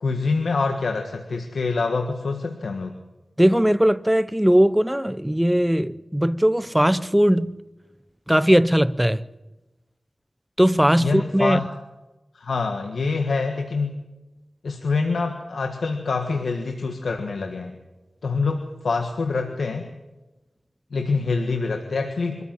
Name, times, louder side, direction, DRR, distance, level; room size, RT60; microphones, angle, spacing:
voice 1, 0.0-3.0 11.0-11.6 12.3-14.0 14.6-17.8 18.2-19.9 20.9-22.4, left 4 dB, 85° left, 1.6 m, -25 dB
voice 2, 3.4-7.6 8.3-9.2 10.6-11.6, equal, 5° right, 0.7 m, -19 dB
24.5 x 14.0 x 9.2 m
wide cardioid pair, 70°, 0 cm